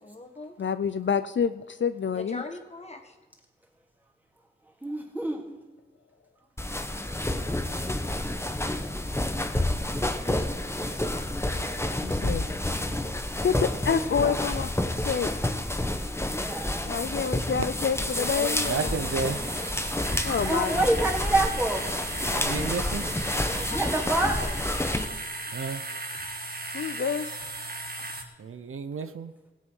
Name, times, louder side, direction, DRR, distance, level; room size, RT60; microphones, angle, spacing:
voice 1, 0.0-0.5 2.1-3.2 23.3-24.6, left 2 dB, 30° left, 3 dB, 1.7 m, -40 dB
voice 2, 0.6-2.4 12.0-12.4 13.4-14.7 15.1-15.3 16.9-19.0 20.2-20.8 26.7-27.3, left 7 dB, 60° left, 12 dB, 0.5 m, -28 dB
voice 3, 4.8-5.6 13.6-14.3 16.1-17.6 18.3-18.6 20.4-21.9 23.7-24.4, right 1 dB, 10° right, -1 dB, 2.8 m, -28 dB
sound 1, 6.6-25.1, left 1 dB, 10° left, 1.0 m, -29 dB
sound 2, 18.1-28.2, right 2 dB, 50° right, 1.5 m, -36 dB
voice 4, 18.5-19.4 22.3-23.1 25.5-25.8 28.4-29.3, right 5 dB, 85° right, 11 dB, 0.7 m, -32 dB
17.0 x 8.5 x 5.6 m, 1.2 s
wide cardioid pair, 80°, 21 cm